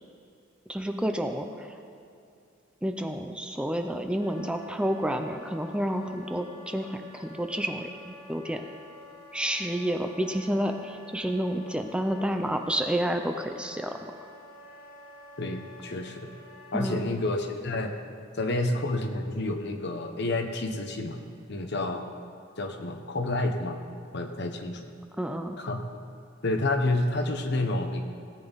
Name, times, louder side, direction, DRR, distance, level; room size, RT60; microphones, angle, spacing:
voice 1, 0.7-1.8 2.8-8.7 9.3-14.1 16.7-17.1 25.2-25.6, equal, 5° right, 5 dB, 0.5 m, -30 dB
Wind instrument woodwind instrument, 4.2-17.0, left 2 dB, 85° left, 2.0 m, -49 dB
voice 2, 15.4-16.3 16.7-17.9 18.3-21.2 21.5-22.0 22.6-23.8 24.1-24.8 25.6-25.8 26.4-28.0, left 2 dB, 60° left, 5 dB, 1.1 m, -29 dB
17.5 x 9.1 x 4.0 m, 2.5 s
head